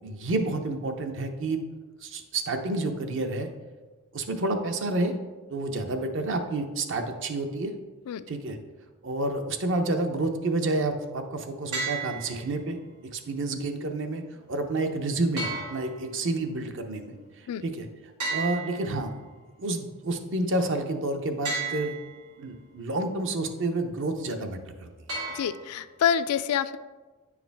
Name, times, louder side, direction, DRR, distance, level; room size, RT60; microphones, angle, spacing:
voice 1, 0.0-1.6 2.0-3.5 4.1-5.1 5.5-7.7 8.3-8.6 9.0-12.8 13.1-14.2 14.5-17.2 17.6-17.8 18.3-19.1 19.6-21.9 22.4-24.9, right 2 dB, 55° right, 6 dB, 0.7 m, -29 dB
sound 1, 11.7-12.7 15.4-16.4 18.2-19.4 21.4-22.4 25.1-26.0, right 3 dB, 85° right, 2.3 m, -34 dB
voice 2, 25.3-26.8, left 8 dB, 75° left, 13 dB, 0.3 m, -27 dB
9.2 x 4.8 x 3.4 m, 1.3 s
head